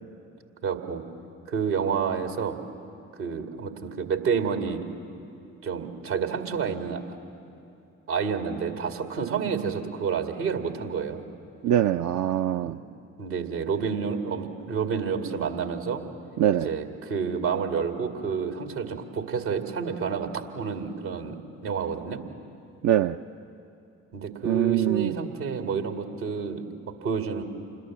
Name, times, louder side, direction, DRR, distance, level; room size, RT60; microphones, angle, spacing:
voice 1, 0.6-1.0 1.5-2.6 3.2-4.8 5.6-7.2 8.1-11.2 12.6-12.8 13.2-16.0 16.6-22.2 24.1-27.4, right 6 dB, 70° right, 5 dB, 2.3 m, -29 dB
voice 2, 11.6-12.8 16.4-16.7 22.8-23.2 24.4-25.1, right 11 dB, 45° right, 8 dB, 0.6 m, -23 dB
27.5 x 21.0 x 7.5 m, 2.8 s
figure-of-eight pair, 40°, 38 cm